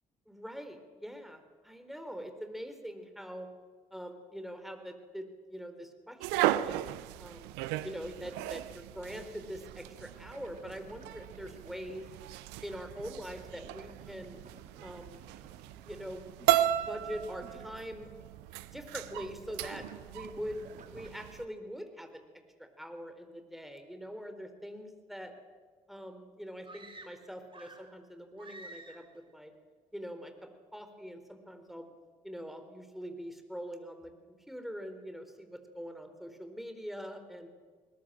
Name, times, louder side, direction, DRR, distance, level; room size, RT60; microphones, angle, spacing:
voice 1, 0.3-3.5 3.9-6.8 7.2-7.5 7.8-12.0 12.6-14.4 14.8-15.2 15.7-16.3 16.9-18.1 18.7-22.2 22.6-25.3 25.9-29.5 29.9-31.9 32.2-37.5, equal, ahead, 7 dB, 4.2 m, -43 dB
sound 1, 6.2-21.4, right 14 dB, 70° right, 0.8 m, -36 dB
sound 2, 10.3-11.9 13.2-18.2 18.5-18.8 19.1-21.3, right 4 dB, 45° right, 3.3 m, -56 dB
sound 3, 26.6-28.0 28.4-29.2, right 2 dB, 30° right, 3.1 m, -50 dB
20.5 x 20.5 x 7.6 m, 1.5 s
figure-of-eight pair, 40°, 18 cm